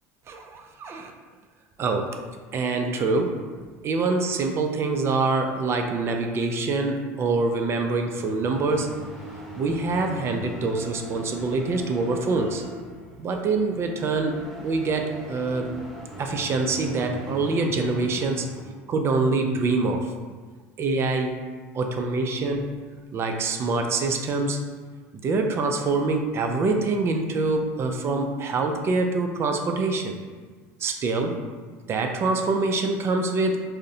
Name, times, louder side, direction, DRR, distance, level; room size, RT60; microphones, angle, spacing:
voice 1, 0.3-1.1 1.8-2.2 2.5-3.5 3.8-8.9 9.5-12.7 13.2-15.7 16.2-18.5 18.9-20.1 20.8-21.4 21.7-22.7 23.1-24.6 25.1-30.2 30.8-31.4 31.9-33.6, right 3 dB, 35° right, 4 dB, 0.3 m, -25 dB
sound 1, 7.7-18.8, left 1 dB, 5° left, 0.9 m, -41 dB
2.5 x 2.0 x 2.7 m, 1.5 s
supercardioid pair, 95°, 7 cm